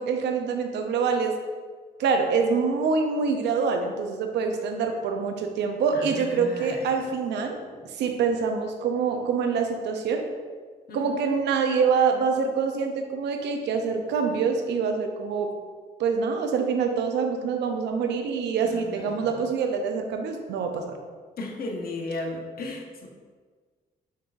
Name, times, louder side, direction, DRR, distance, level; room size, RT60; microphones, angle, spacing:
voice 1, 0.0-1.3 2.0-7.6 8.0-10.2 10.9-15.5 16.0-21.0, right 5 dB, 75° right, 4 dB, 0.6 m, -25 dB
voice 2, 5.9-6.9 7.7-7.9 10.9-11.1 18.6-19.3 21.4-23.1, left 2 dB, 55° left, 1 dB, 0.9 m, -35 dB
5.6 x 3.4 x 2.5 m, 1.5 s
supercardioid pair, 60°, 18 cm